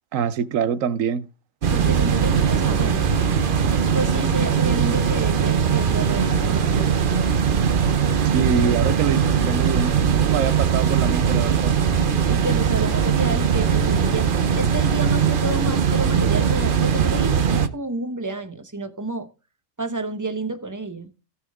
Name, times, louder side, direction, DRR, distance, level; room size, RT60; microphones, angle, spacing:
voice 1, 0.1-1.3 8.3-11.7, right 7 dB, 80° right, 1.1 m, -24 dB
sound 1, 1.6-17.7, right 7 dB, 45° right, 0.9 m, -20 dB
voice 2, 1.7-3.3 3.9-7.1 12.3-19.3 19.8-21.1, right 2 dB, 15° right, 1.0 m, -30 dB
17.5 x 6.1 x 3.6 m
omnidirectional pair, 1.4 m